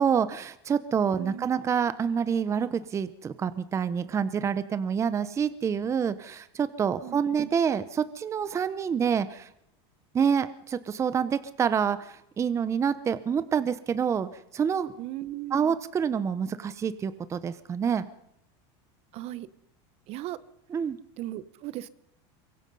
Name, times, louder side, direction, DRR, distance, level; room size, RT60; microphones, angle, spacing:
voice 1, 0.0-9.5 10.1-14.9 15.5-18.1 20.7-21.0, right 7 dB, 20° right, 14 dB, 0.8 m, -27 dB
voice 2, 1.2-1.5 7.0-7.2 15.0-15.8 19.1-19.5 20.1-20.4 21.2-21.9, right 15 dB, 45° right, 17 dB, 0.9 m, -37 dB
24.0 x 22.0 x 5.5 m, 0.80 s
supercardioid pair, 140°, 14 cm